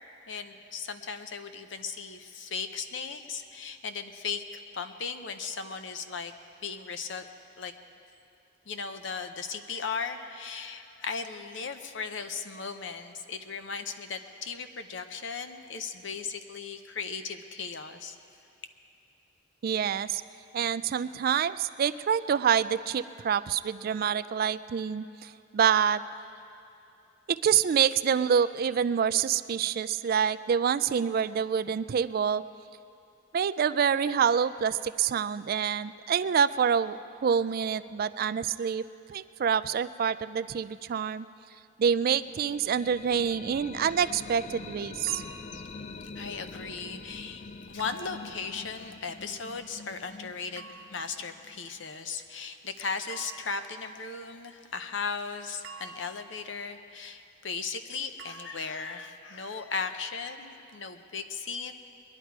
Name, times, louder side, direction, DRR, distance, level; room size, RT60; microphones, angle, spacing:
voice 1, 0.3-6.3 6.6-7.2 7.6-7.7 8.7-18.2 45.5-45.6 46.1-61.7, left 5 dB, 70° left, 8 dB, 0.8 m, -37 dB
voice 2, 19.6-20.2 20.5-26.0 27.3-32.4 33.3-38.8 39.1-41.3 41.8-45.2, right 7 dB, 50° right, 15 dB, 0.3 m, -27 dB
sound 1, 42.1-51.9, left 3 dB, 35° left, 0.4 m, -45 dB
sound 2, 45.1-45.8 47.8-48.5 50.6-51.2 53.1-53.8 55.6-56.5 58.2-58.9, right 4 dB, 85° right, 1.4 m, -48 dB
22.0 x 11.0 x 4.7 m, 2.7 s
head